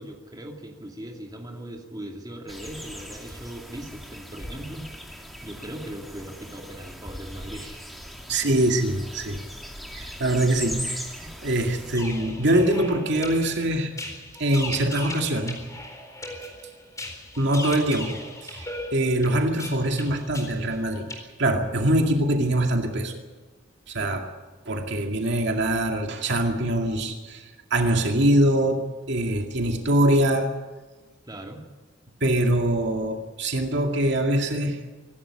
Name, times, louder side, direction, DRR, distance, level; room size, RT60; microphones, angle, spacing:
voice 1, 0.0-7.9 9.4-9.7 11.2-11.3 11.8-12.0 31.3-31.6, right 1 dB, 20° right, 2 dB, 2.6 m, -40 dB
sound 1, 2.5-12.0, equal, ahead, 2.5 m, -39 dB
voice 2, 8.3-9.4 9.9-11.1 11.4-13.9 14.4-15.6 17.4-23.2 23.9-24.3 24.7-30.5 32.2-34.8, right 1 dB, 65° right, 3 dB, 2.3 m, -23 dB
sound 2, 11.9-21.2, left 1 dB, 15° left, 4.2 m, -38 dB
25.0 x 12.5 x 10.0 m, 1.3 s
head